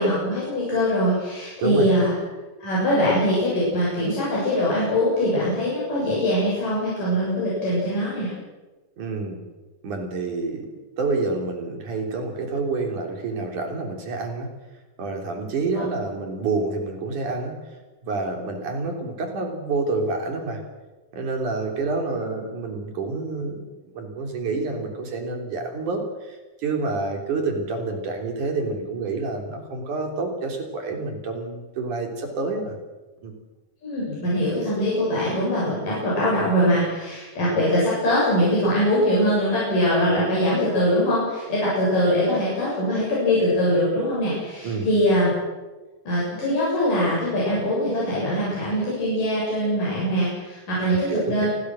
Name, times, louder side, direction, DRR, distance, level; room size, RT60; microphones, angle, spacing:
voice 1, 0.0-2.1 2.6-8.3 15.8-15.9 33.8-45.3 46.1-51.5, equal, 90° left, -7 dB, 9.5 m, -22 dB
voice 2, 9.0-9.4 9.8-10.7 11.0-14.5 15.0-17.6 18.0-20.6 21.1-23.7 23.9-32.8 33.2-33.3 44.6-44.9 51.1-51.5, right 3 dB, 70° right, 3 dB, 4.9 m, -28 dB
28.0 x 21.0 x 6.4 m, 1.2 s
omnidirectional pair, 3.7 m